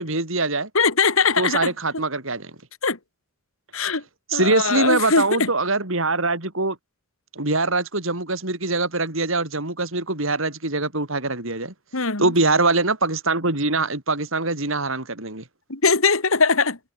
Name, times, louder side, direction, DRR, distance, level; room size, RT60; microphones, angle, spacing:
voice 1, 0.0-0.7 1.4-2.5 4.3-6.8 7.3-11.7 12.2-15.4, right 3 dB, 65° right, 4.7 m, -23 dB
voice 2, 0.7-1.7 2.8-3.0 3.7-4.0 4.3-5.5 11.9-12.3 15.7-16.8, left 4 dB, 70° left, 2.5 m, -20 dB
head